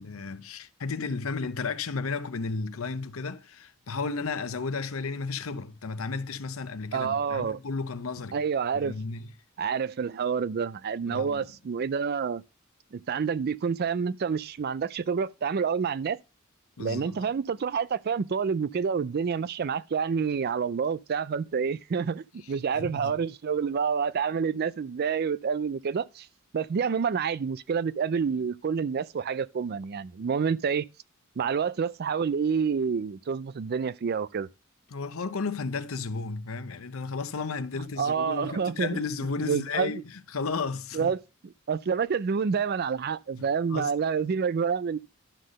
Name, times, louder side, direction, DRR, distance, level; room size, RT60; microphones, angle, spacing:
voice 1, 0.0-8.4 8.7-9.3 11.1-11.5 16.8-17.2 22.7-23.2 34.9-41.1 43.4-43.9, left 4 dB, 85° left, 0.7 m, -33 dB
voice 2, 6.9-7.6 8.3-9.0 9.6-12.4 12.9-16.2 16.8-26.3 26.5-30.9 31.4-34.5 38.0-39.0 39.4-40.0 40.9-45.0, right 6 dB, 50° right, 0.4 m, -28 dB
11.5 x 3.9 x 6.4 m
head